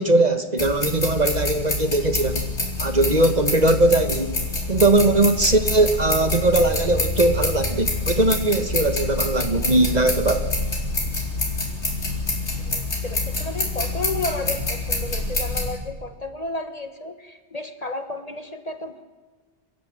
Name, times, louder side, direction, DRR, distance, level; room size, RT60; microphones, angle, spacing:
voice 1, 0.0-2.4 2.8-4.4 4.7-10.5, right 2 dB, 35° right, 8 dB, 1.5 m, -20 dB
sound 1, 0.6-15.7, left 2 dB, 75° left, 4.8 m, -26 dB
voice 2, 12.6-19.0, left 2 dB, 35° left, 9 dB, 1.6 m, -32 dB
28.5 x 14.5 x 8.9 m, 1.4 s
omnidirectional pair, 1.2 m